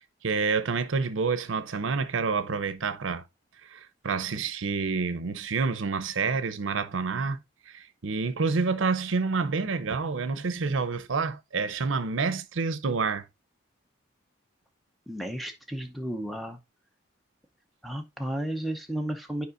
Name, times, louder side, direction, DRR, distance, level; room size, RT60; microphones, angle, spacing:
voice 1, 0.2-3.2 3.6-7.4 7.7-13.2, right 4 dB, 80° right, 0.7 m, -28 dB
voice 2, 15.1-16.6 17.8-19.5, right 1 dB, ahead, 0.6 m, -33 dB
9.5 x 4.8 x 2.5 m
head